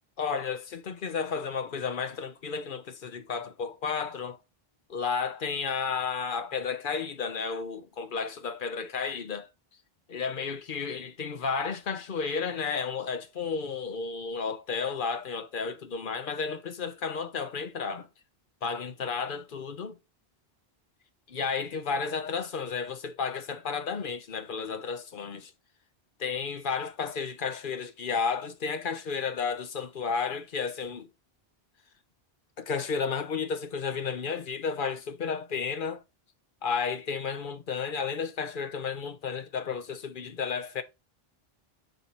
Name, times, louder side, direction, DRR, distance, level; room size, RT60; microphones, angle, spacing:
voice 1, 0.2-4.4 4.9-9.5 10.1-18.1 18.6-20.0 21.3-25.5 26.2-31.1 32.6-36.0 36.6-40.8, left 5 dB, 60° left, 0.9 m, -32 dB
5.1 x 4.5 x 4.1 m
omnidirectional pair, 1.0 m